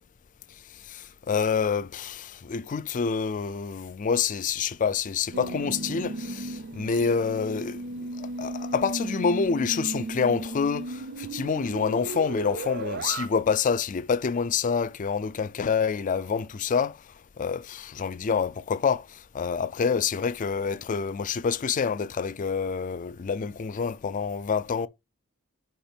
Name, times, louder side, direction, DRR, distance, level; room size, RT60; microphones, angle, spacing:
voice 1, 0.8-17.0 17.4-24.9, left 6 dB, 35° left, 0.4 m, -27 dB
sound 1, 5.3-13.3, right 2 dB, 50° right, 0.5 m, -35 dB
5.0 x 4.4 x 5.1 m
head